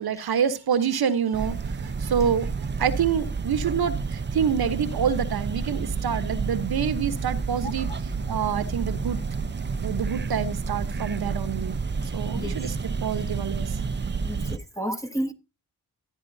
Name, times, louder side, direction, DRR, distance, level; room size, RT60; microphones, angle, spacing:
voice 1, 0.0-2.5 2.8-7.9 8.3-9.2 9.8-11.8 12.1-13.8, right 7 dB, 70° right, 1.1 m, -27 dB
sound 1, 1.3-14.6, right 4 dB, 30° right, 0.7 m, -30 dB
voice 2, 12.3-12.7 14.2-15.3, equal, 10° left, 1.4 m, -31 dB
14.0 x 9.7 x 2.7 m
cardioid pair, 60°, 39 cm